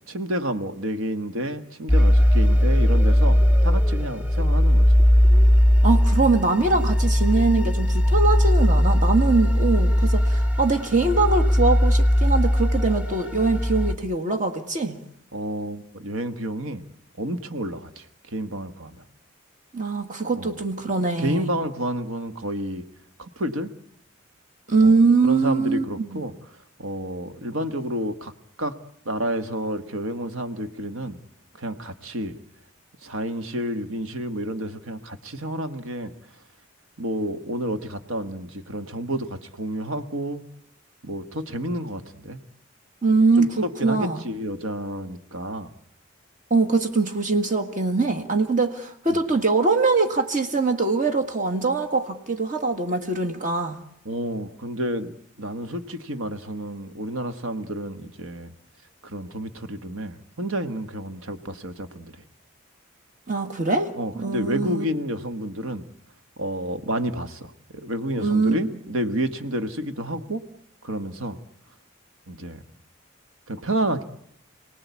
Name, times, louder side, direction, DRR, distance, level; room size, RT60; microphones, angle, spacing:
voice 1, 0.1-4.9 15.3-16.8 17.2-19.0 20.3-20.6 21.2-22.8 23.2-23.7 24.8-25.0 25.2-26.3 26.8-28.3 28.6-28.7 29.0-31.2 31.6-32.3 33.0-36.1 37.0-40.4 41.0-42.4 43.4-45.7 49.1-49.2 54.0-58.5 59.0-62.2 63.9-65.8 66.4-70.5 70.8-71.4 72.3-72.6 73.5-74.0, right 1 dB, 85° right, 9 dB, 1.6 m, -30 dB
sound 1, 1.9-13.9, equal, 5° right, 1.2 m, -19 dB
voice 2, 5.8-15.0 19.7-21.5 24.7-26.2 43.0-44.2 46.5-53.8 63.3-64.8 68.2-68.6, right 3 dB, 35° right, 4 dB, 1.8 m, -22 dB
28.0 x 18.5 x 8.4 m, 0.71 s
head